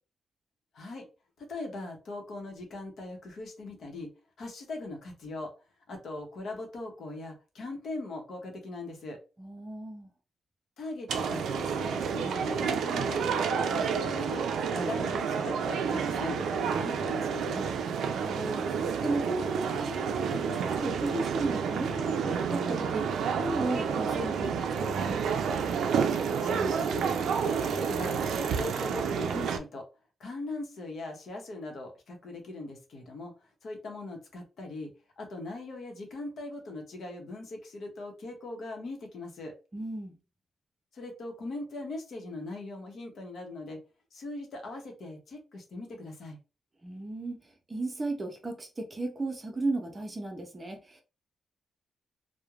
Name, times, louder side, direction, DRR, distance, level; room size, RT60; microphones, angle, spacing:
voice 1, 0.7-1.1 1.4-5.5 5.9-9.2 10.8-14.5 14.7-17.7 26.4-27.1 27.4-28.2 28.5-29.9 30.2-39.5 40.9-43.8 44.1-46.4, left 2 dB, 60° left, 0.8 m, -40 dB
voice 2, 9.4-10.1 18.0-25.6 39.7-40.1 46.8-51.0, right 2 dB, 25° right, 0.6 m, -35 dB
sound 1, 11.1-29.6, right 6 dB, 85° right, 0.3 m, -30 dB
3.0 x 2.1 x 2.3 m
cardioid pair, 125°, 0 cm